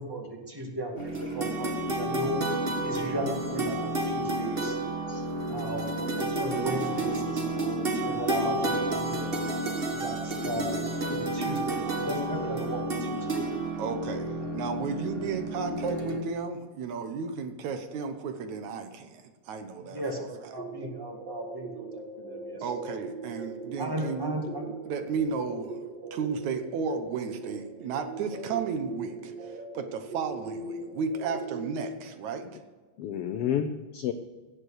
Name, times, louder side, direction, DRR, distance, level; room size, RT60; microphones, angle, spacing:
voice 1, 0.0-2.4 2.8-4.8 5.5-9.3 9.9-10.7 11.0-13.5 15.2-15.3 19.9-21.9 22.2-22.6 23.8-24.6 33.4-33.6, right 1 dB, 10° right, 1 dB, 1.4 m, -35 dB
sound 1, 1.0-16.2, right 2 dB, 35° right, 1.0 m, -31 dB
voice 2, 13.8-20.5 22.6-24.4 24.9-25.8 26.1-32.5, right 5 dB, 75° right, 7 dB, 2.5 m, -33 dB
sound 2, 20.6-31.8, right 3 dB, 55° right, 3.3 m, -40 dB
voice 3, 33.0-34.1, left 9 dB, 85° left, 9 dB, 1.3 m, -31 dB
17.0 x 7.6 x 6.5 m, 1.4 s
omnidirectional pair, 3.4 m